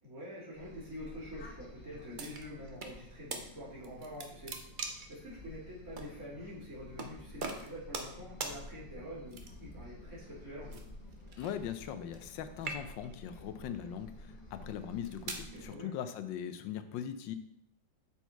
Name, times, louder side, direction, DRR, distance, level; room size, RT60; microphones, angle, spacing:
voice 1, 0.0-4.5 5.1-10.8 15.5-15.9, equal, 50° right, -9 dB, 3.5 m, -46 dB
sound 1, 0.5-15.7, left 1 dB, 30° left, 1.3 m, -51 dB
sound 2, 2.2-2.9 3.3-3.4 3.8-5.2 6.0-6.1 7.0-7.1 7.4-8.2 8.4-8.6 9.3-9.7 10.7-12.3 12.6-13.2 13.9-14.1 14.8-15.5, right 3 dB, 65° right, 0.5 m, -41 dB
voice 2, 11.4-17.4, left 9 dB, 85° left, 10 dB, 1.3 m, -40 dB
6.9 x 4.5 x 4.5 m, 0.77 s
omnidirectional pair, 2.0 m